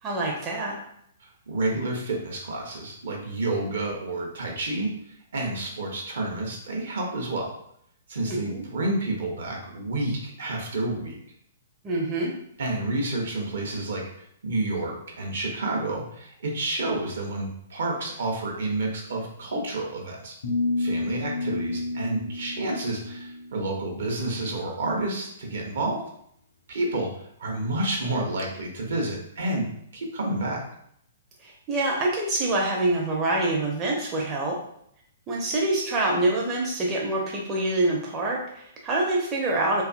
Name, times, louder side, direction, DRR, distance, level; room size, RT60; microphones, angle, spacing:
voice 1, 0.0-0.8 8.3-8.6 11.8-12.3 31.4-34.6 35.3-39.8, right 2 dB, 25° right, -2 dB, 0.5 m, -26 dB
voice 2, 1.5-4.9 5.3-7.5 8.1-11.2 12.6-14.0 14.4-20.3 20.8-26.0 26.7-27.1 27.4-29.7 29.9-30.6, right 2 dB, 65° right, 0 dB, 0.7 m, -29 dB
sound 1, 20.4-23.6, left 2 dB, 65° left, 0.4 m, -30 dB
2.7 x 2.4 x 2.4 m, 0.70 s
figure-of-eight pair, 120°, 0 cm